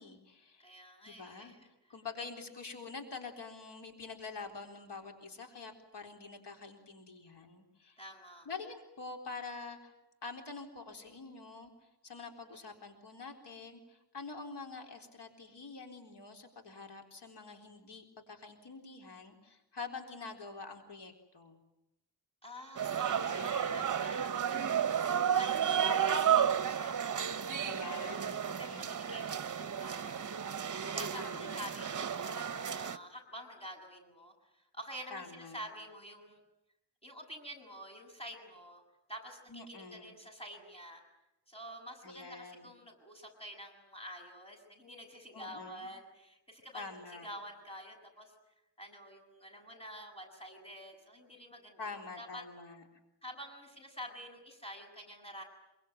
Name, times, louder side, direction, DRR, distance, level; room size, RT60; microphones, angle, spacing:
voice 1, 0.0-0.7 1.1-1.5 1.9-8.0 8.5-9.9 10.2-21.6 23.2-23.9 27.6-29.0 31.1-31.6 35.1-35.6 39.5-40.2 42.0-42.7 45.3-45.9 46.7-47.3 51.8-52.8, left 4 dB, 80° left, 3 dB, 4.0 m, -46 dB
voice 2, 0.6-1.7 8.0-8.5 22.4-26.9 27.8-30.3 30.8-36.4 37.0-38.8 39.1-41.0 41.5-46.9 47.2-48.3 48.8-52.4 53.2-55.4, equal, 15° left, 3 dB, 7.6 m, -48 dB
sound 1, 22.8-33.0, right 8 dB, 45° right, 1.0 m, -32 dB
26.5 x 24.0 x 9.3 m, 0.90 s
wide cardioid pair, 155°, 41 cm